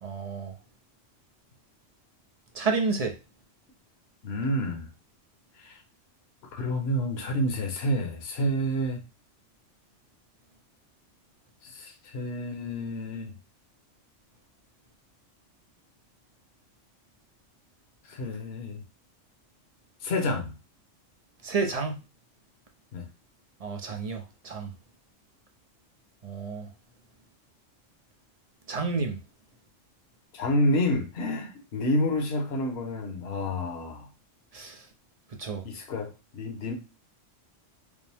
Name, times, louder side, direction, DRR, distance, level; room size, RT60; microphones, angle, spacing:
voice 1, 0.0-0.5 2.5-3.2 21.4-22.0 23.6-24.7 26.2-26.7 28.7-29.2 34.5-34.9 35.4-35.6, right 4 dB, 45° right, 3 dB, 0.5 m, -30 dB
voice 2, 4.2-4.9 5.6-5.8 6.5-9.0 11.6-13.3 18.1-18.8 20.0-20.5 22.9-23.1 30.3-34.1 35.6-36.7, left 1 dB, 55° left, 3 dB, 1.1 m, -29 dB
5.1 x 2.0 x 3.4 m, 0.28 s
omnidirectional pair, 1.3 m